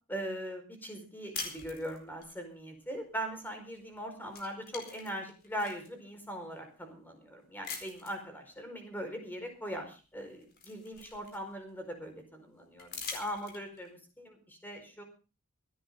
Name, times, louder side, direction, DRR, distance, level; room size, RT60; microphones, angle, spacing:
voice 1, 0.1-15.0, equal, 10° left, 5 dB, 4.7 m, -40 dB
sound 1, 1.3-2.3 3.7-4.0 4.3-5.9 6.5-6.6 7.6-8.2 9.7-9.8 10.2-11.7 12.8-13.9, left 5 dB, 45° left, 4.4 m, -43 dB
25.0 x 10.0 x 3.8 m, 0.34 s
head